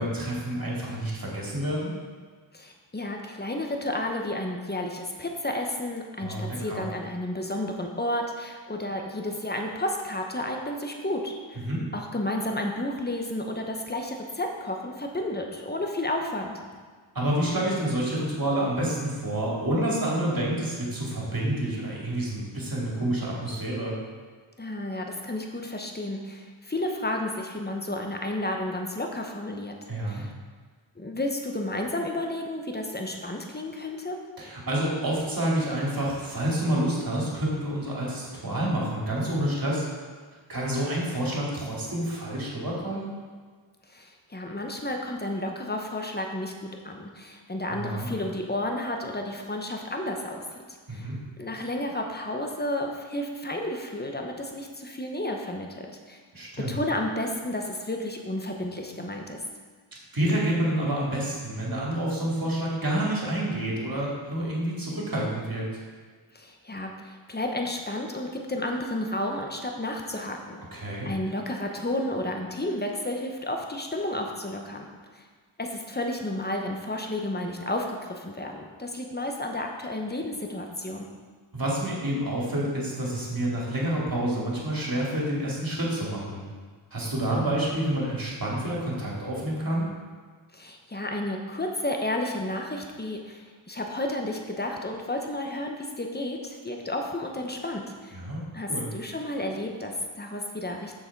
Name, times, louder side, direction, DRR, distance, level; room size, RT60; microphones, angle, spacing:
voice 1, 0.0-1.9 6.2-6.8 11.6-11.8 17.1-24.0 29.9-30.2 34.4-39.9 40.5-43.1 47.7-48.1 50.9-51.2 56.3-56.8 60.1-65.7 70.7-71.1 81.5-86.4 86.9-89.9 98.1-98.9, right 1 dB, 45° right, -4 dB, 2.5 m, -28 dB
voice 2, 2.5-11.7 11.9-16.5 24.6-29.7 30.1-30.3 31.0-34.2 43.9-50.4 50.7-51.1 51.4-56.2 56.7-59.4 66.3-70.6 71.0-74.9 75.1-75.2 75.6-81.1 90.5-98.2 98.5-100.9, left 1 dB, 20° left, 2 dB, 1.1 m, -32 dB
6.8 x 6.5 x 4.7 m, 1.5 s
wide cardioid pair, 55°, 49 cm